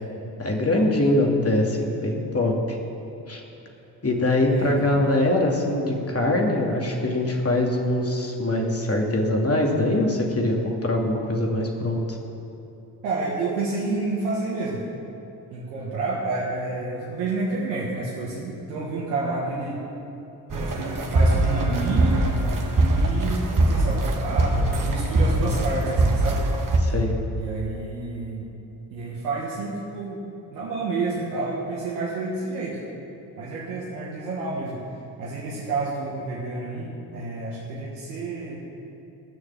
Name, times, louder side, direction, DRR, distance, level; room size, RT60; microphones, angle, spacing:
voice 1, 0.4-2.8 3.3-3.4 4.0-12.2 26.8-27.1, left 1 dB, 30° left, 0 dB, 2.6 m, -23 dB
voice 2, 4.5-4.9 13.0-14.8 15.5-19.8 20.5-22.3 22.8-26.4 27.3-28.5 28.9-30.2 30.5-32.8 33.3-34.8 35.2-38.5, right 3 dB, 90° right, -5 dB, 1.5 m, -29 dB
sound 1, 20.5-26.8, right 2 dB, 40° right, 2.0 m, -22 dB
16.5 x 6.6 x 7.4 m, 3.0 s
hypercardioid pair, 45°, 48 cm